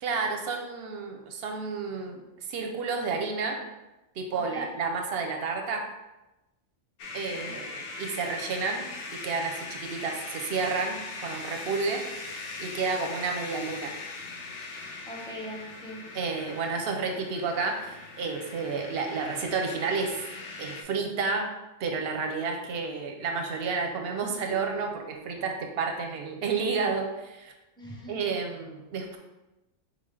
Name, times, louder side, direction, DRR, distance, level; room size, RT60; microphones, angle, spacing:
voice 1, 0.0-3.6 4.2-5.8 7.1-8.9 9.1-12.0 12.6-13.9 16.1-20.2 20.6-21.5 21.8-27.5 28.1-29.2, right 4 dB, 60° right, 3 dB, 0.7 m, -31 dB
voice 2, 4.3-4.7 7.4-7.6 14.8-16.0 27.8-28.2, equal, 5° left, -3 dB, 0.5 m, -41 dB
sound 1, 7.0-20.8, left 3 dB, 65° left, 0.9 m, -40 dB
4.0 x 3.6 x 3.2 m, 1.0 s
omnidirectional pair, 1.4 m